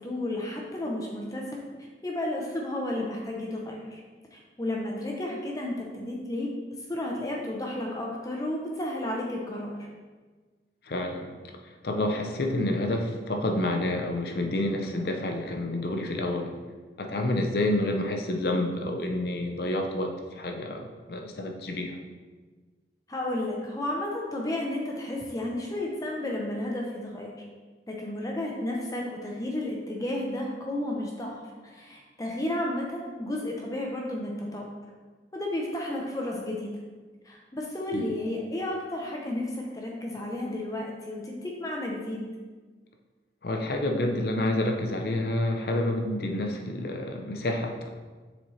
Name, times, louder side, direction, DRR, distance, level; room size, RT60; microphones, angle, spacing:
voice 1, 0.0-1.6 2.0-4.0 4.3-6.5 6.9-9.8 23.1-27.3 27.9-34.7 35.3-36.8 37.2-42.3, left 1 dB, 20° left, -1 dB, 0.6 m, -32 dB
voice 2, 10.9-11.3 11.6-16.5 17.0-22.0 37.9-38.2 43.4-47.9, left 1 dB, 60° left, 3 dB, 0.6 m, -29 dB
7.2 x 4.2 x 3.2 m, 1.4 s
head